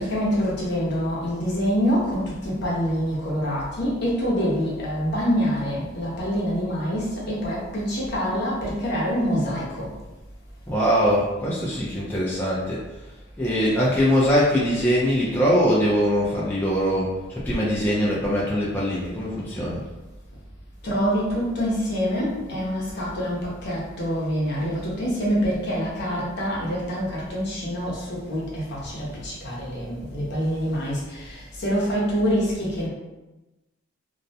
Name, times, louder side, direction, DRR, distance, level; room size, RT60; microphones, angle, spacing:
voice 1, 0.0-9.9 20.8-32.9, equal, 55° left, -5 dB, 0.8 m, -26 dB
voice 2, 10.7-13.1 13.4-19.8, equal, 10° left, -8 dB, 0.4 m, -22 dB
2.3 x 2.1 x 2.6 m, 1.1 s
head